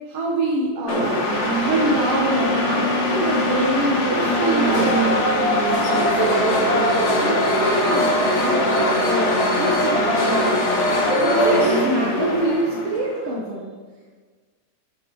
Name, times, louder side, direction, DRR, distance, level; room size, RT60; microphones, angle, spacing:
voice 1, 0.1-1.2 1.6-5.2 5.7-9.3 9.6-10.6 11.2-13.7, right 2 dB, 60° right, -3 dB, 1.9 m, -25 dB
sound 1, 0.9-13.2, left 1 dB, 70° left, 0.6 m, -21 dB
13.5 x 6.7 x 4.7 m, 1.5 s
omnidirectional pair, 3.6 m